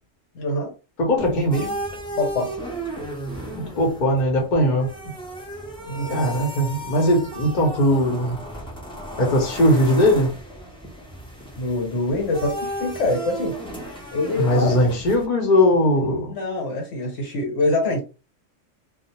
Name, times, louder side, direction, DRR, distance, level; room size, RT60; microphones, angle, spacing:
voice 1, 0.3-0.7 2.2-2.5 5.9-6.3 11.6-13.6 14.1-14.9 16.3-18.0, left 2 dB, 70° left, 1.2 m, -25 dB
voice 2, 1.0-1.8 3.8-4.9 6.1-8.4 9.2-10.3 14.4-16.3, equal, 45° left, 0.8 m, -19 dB
sound 1, 1.2-15.3, right 1 dB, 10° left, 0.3 m, -34 dB
2.4 x 2.0 x 2.9 m
omnidirectional pair, 1.3 m